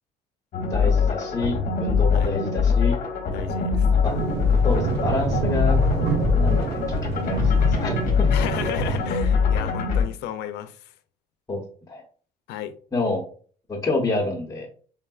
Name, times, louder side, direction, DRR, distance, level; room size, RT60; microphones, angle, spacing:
sound 1, 0.5-10.0, left 5 dB, 50° left, 0.8 m, -22 dB
voice 1, 0.6-2.9 3.9-4.1 4.6-5.8 6.4-8.3 9.9-10.0 11.5-11.6 11.9-12.0 12.9-13.2 13.7-14.7, left 2 dB, 20° left, 0.8 m, -28 dB
voice 2, 3.3-3.9 8.3-10.9 12.5-12.7, left 10 dB, 85° left, 0.4 m, -33 dB
sound 2, 4.0-9.1, right 5 dB, 80° right, 0.6 m, -28 dB
3.5 x 2.1 x 2.3 m
cardioid pair, 110°, 17 cm